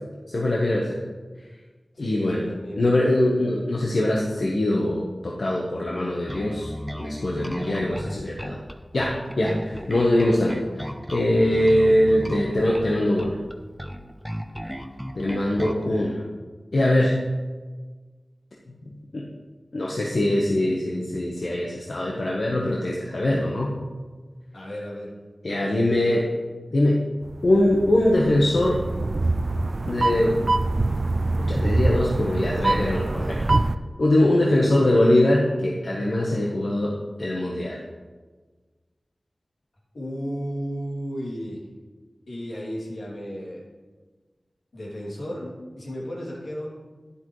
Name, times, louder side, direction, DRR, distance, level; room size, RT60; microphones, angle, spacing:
voice 1, 0.3-1.0 2.0-2.4 2.7-6.7 7.0-8.6 8.9-13.3 15.1-16.2 16.7-17.2 19.1-19.3 19.7-23.7 25.4-26.3 26.7-27.1 27.4-28.8 29.9-30.4 31.4-33.5 34.0-37.8, left 1 dB, 70° left, -3 dB, 1.1 m, -22 dB
voice 2, 1.9-2.9 9.7-9.9 11.9-12.0 24.5-25.1 34.6-34.7 39.9-41.6 42.3-43.6 44.7-46.7, equal, 85° left, -5 dB, 2.8 m, -34 dB
Bass guitar, 6.3-15.9, equal, ahead, 0.8 m, -34 dB
sound 1, 27.2-33.7, right 2 dB, 55° right, 0.4 m, -25 dB
11.5 x 10.0 x 3.2 m, 1.4 s
wide cardioid pair, 60°, 0 cm